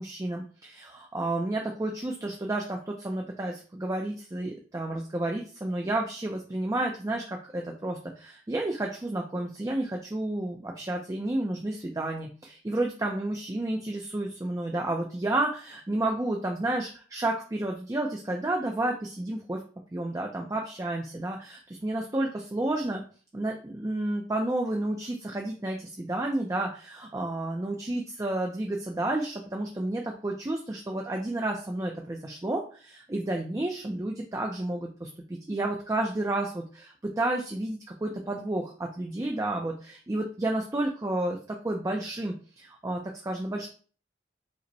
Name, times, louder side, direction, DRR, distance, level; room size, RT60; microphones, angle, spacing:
voice 1, 0.0-19.6 19.9-23.0 23.3-43.7, right 1 dB, 20° right, 1 dB, 0.4 m, -31 dB
5.2 x 2.1 x 4.0 m, 0.41 s
head